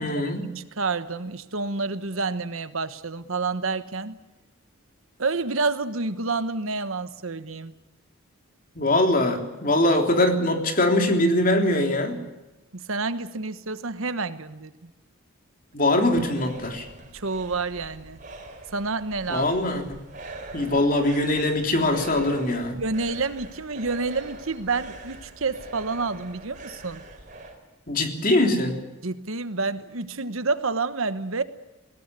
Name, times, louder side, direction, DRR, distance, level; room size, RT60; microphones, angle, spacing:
voice 1, 0.0-0.4 8.7-12.2 15.7-16.8 19.3-20.0 20.5-22.8 27.9-28.8, left 1 dB, 40° left, 4 dB, 3.4 m, -22 dB
voice 2, 0.5-4.2 5.2-7.7 12.7-14.9 17.1-18.2 18.7-19.8 22.8-27.0 29.0-31.4, right 3 dB, 70° right, 12 dB, 1.2 m, -29 dB
sound 1, 15.7-27.6, right 2 dB, 35° right, 4.4 m, -43 dB
20.5 x 18.0 x 9.8 m, 1.1 s
head